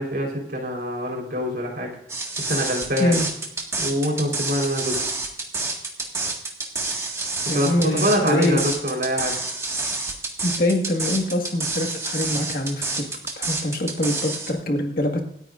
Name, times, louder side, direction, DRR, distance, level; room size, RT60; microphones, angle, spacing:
voice 1, 0.0-1.9 2.5-3.2 3.8-5.0 7.5-9.3, equal, 55° right, 0 dB, 4.1 m, -24 dB
sound 1, 2.1-14.5, right 3 dB, 15° right, 1.8 m, -28 dB
voice 2, 7.5-8.6 10.4-12.8 13.4-15.2, left 1 dB, 55° left, 3 dB, 1.8 m, -24 dB
26.5 x 9.3 x 2.6 m, 0.73 s
head